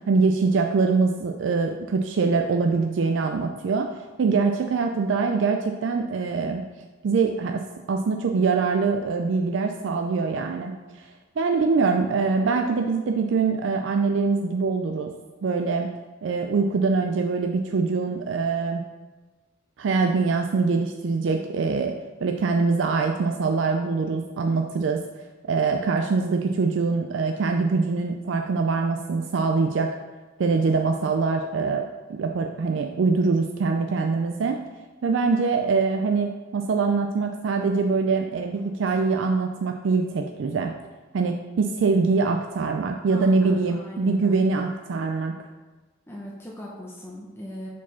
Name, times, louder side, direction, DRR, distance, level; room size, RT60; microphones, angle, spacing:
voice 1, 0.1-3.9 4.2-6.6 7.0-7.6 7.9-15.1 15.4-15.9 16.2-18.8 19.8-21.9 22.2-25.0 25.5-29.9 30.4-31.8 32.1-34.6 35.0-40.7 41.1-45.3, right 4 dB, 65° right, 4 dB, 0.4 m, -23 dB
voice 2, 43.1-44.4 46.1-47.7, equal, 10° left, -4 dB, 0.7 m, -40 dB
4.8 x 4.6 x 5.6 m, 1.3 s
head